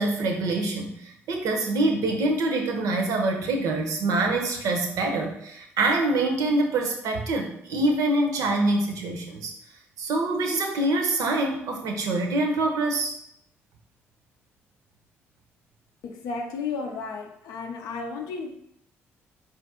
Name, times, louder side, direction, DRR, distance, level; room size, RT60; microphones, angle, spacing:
voice 1, 0.0-9.5 10.0-13.1, right 2 dB, 60° right, 3 dB, 0.6 m, -25 dB
voice 2, 16.0-18.6, left 4 dB, 65° left, 4 dB, 0.5 m, -33 dB
4.3 x 2.4 x 2.7 m, 0.73 s
figure-of-eight pair, 45°, 6 cm